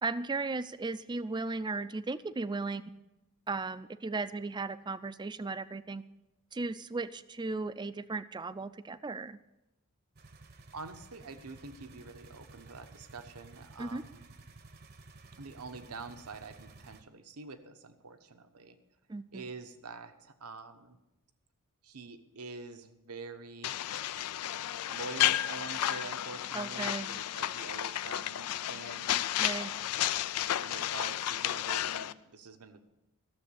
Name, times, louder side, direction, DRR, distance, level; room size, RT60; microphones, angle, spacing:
voice 1, 0.0-2.9 3.5-6.0 6.5-9.4 13.8-14.0 19.1-19.4 26.5-27.1 29.4-29.7, right 3 dB, 20° right, 14 dB, 0.4 m, -36 dB
sound 1, 10.2-17.0, right 3 dB, 45° right, 0.9 m, -54 dB
voice 2, 10.7-14.2 15.4-18.7 19.3-21.0 21.8-23.8 24.9-30.0 30.6-32.8, right 4 dB, 80° right, 9 dB, 1.0 m, -46 dB
sound 2, 23.6-32.1, left 12 dB, 90° left, 0.4 m, -32 dB
13.0 x 7.2 x 8.4 m, 0.95 s
head